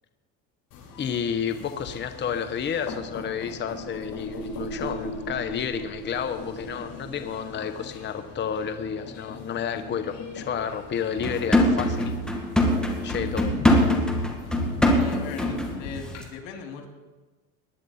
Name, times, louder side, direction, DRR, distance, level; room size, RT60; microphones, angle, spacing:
sound 1, 0.7-16.2, left 4 dB, 60° left, 5.7 m, -41 dB
voice 1, 1.0-12.1 12.9-13.5, left 7 dB, 30° left, 8 dB, 0.9 m, -31 dB
sound 2, 2.6-7.5, right 3 dB, 50° right, 3.0 m, -39 dB
sound 3, 11.2-15.8 16.1-16.2, left 1 dB, ahead, 2.0 m, -23 dB
voice 2, 14.8-16.9, left 6 dB, 85° left, 3 dB, 2.6 m, -38 dB
19.5 x 10.5 x 4.2 m, 1.2 s
supercardioid pair, 110°, 38 cm